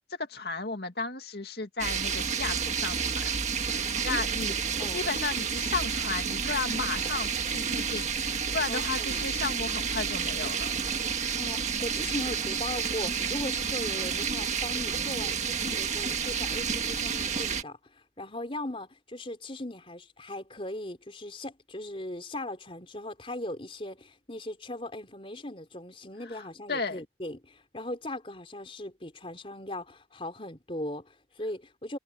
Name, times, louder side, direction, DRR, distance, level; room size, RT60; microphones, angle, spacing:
voice 1, 0.1-3.3 3.7-4.5 4.9-10.7 26.3-27.0, left 4 dB, 60° left, 2.3 m, -34 dB
sound 1, 1.8-17.6, right 6 dB, 40° right, 1.6 m, -30 dB
voice 2, 8.7-9.2 11.1-17.8 18.2-32.0, left 1 dB, 30° left, 4.0 m, -38 dB
head